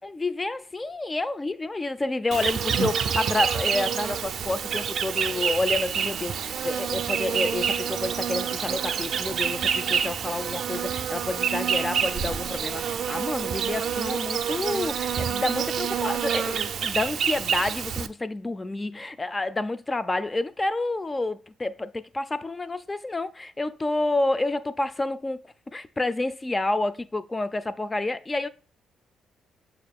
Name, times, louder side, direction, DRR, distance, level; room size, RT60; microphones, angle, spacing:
voice 1, 0.0-25.4 25.7-28.5, left 2 dB, 20° left, 0.3 m, -29 dB
Insect, 2.3-18.1, right 7 dB, 65° right, 0.3 m, -27 dB
6.4 x 2.4 x 3.4 m
cardioid pair, 90°, 0 cm